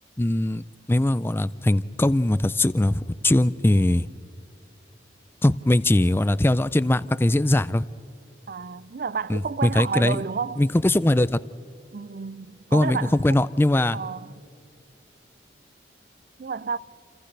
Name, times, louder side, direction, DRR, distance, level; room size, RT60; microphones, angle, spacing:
voice 1, 0.2-4.1 5.4-7.8 9.3-10.2 10.6-11.4 12.7-13.0 13.2-14.0, left 1 dB, 10° left, 0.4 m, -21 dB
voice 2, 8.5-10.7 11.9-13.4 13.9-14.3 16.4-16.8, right 5 dB, 50° right, 0.4 m, -31 dB
29.0 x 28.5 x 3.3 m
head